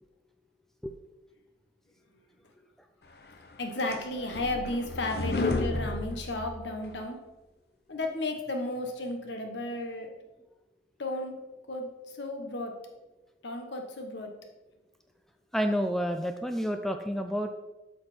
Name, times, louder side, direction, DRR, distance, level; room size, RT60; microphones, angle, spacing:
sound 1, 3.3-7.0, left 2 dB, 60° left, 0.8 m, -32 dB
voice 1, 3.6-7.2 7.9-10.1 11.0-11.4 11.7-11.9 12.2-12.7 13.4-14.3, left 2 dB, 80° left, 4 dB, 1.2 m, -33 dB
voice 2, 15.5-17.5, equal, ahead, 6 dB, 0.4 m, -29 dB
7.8 x 6.0 x 4.3 m, 1.0 s
head